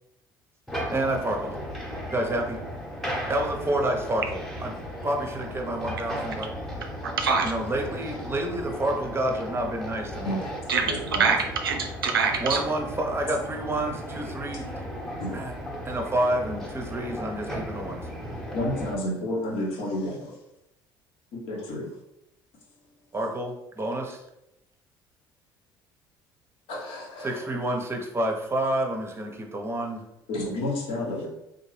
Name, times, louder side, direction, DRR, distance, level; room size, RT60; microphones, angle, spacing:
sound 1, 0.7-18.9, equal, ahead, 1.0 m, -36 dB
voice 1, 0.9-1.6 2.1-2.6 3.3-4.7 5.0-6.5 7.4-10.4 12.4-14.7 15.3-15.6 15.8-18.1 23.1-24.2 27.2-30.0, right 1 dB, 20° right, 2 dB, 0.8 m, -29 dB
voice 2, 7.0-7.5 10.7-12.6, right 5 dB, 80° right, 3 dB, 0.5 m, -24 dB
voice 3, 10.9-11.2 15.2-15.4 18.5-20.3 21.5-21.9 26.7-27.3 30.3-31.3, left 1 dB, 55° left, -1 dB, 1.0 m, -30 dB
3.7 x 2.5 x 3.1 m, 0.86 s
figure-of-eight pair, 55°, 12 cm